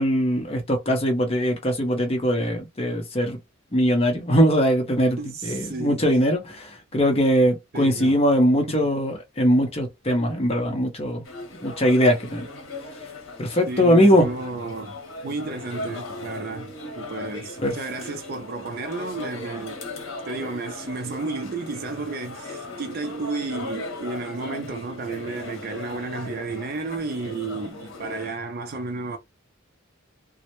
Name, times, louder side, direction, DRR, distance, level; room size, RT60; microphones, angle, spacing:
voice 1, 0.0-3.4 3.7-11.2 11.6-12.5 13.4-14.3 17.6-17.7, equal, 30° left, 0.6 m, -21 dB
voice 2, 5.2-6.1 7.7-8.2 8.7-8.9 13.7-19.8 20.2-29.2, right 3 dB, 45° right, 0.4 m, -32 dB
sound 1, 11.2-28.3, left 2 dB, 65° left, 0.8 m, -38 dB
2.1 x 2.0 x 2.8 m
head